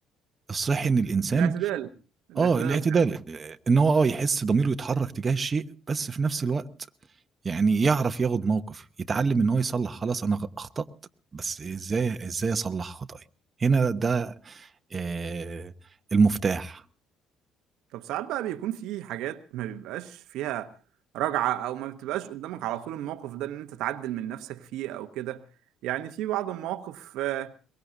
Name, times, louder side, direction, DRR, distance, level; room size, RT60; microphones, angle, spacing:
voice 1, 0.5-1.5 2.3-6.6 7.4-10.9 11.3-13.2 13.6-15.7 16.1-16.8, right 4 dB, 35° right, 1.0 m, -25 dB
voice 2, 1.3-1.9 2.3-3.0 17.9-20.7 21.1-25.4 25.8-27.5, right 13 dB, 70° right, 1.0 m, -32 dB
23.0 x 21.0 x 2.7 m
hypercardioid pair, 60°, 0 cm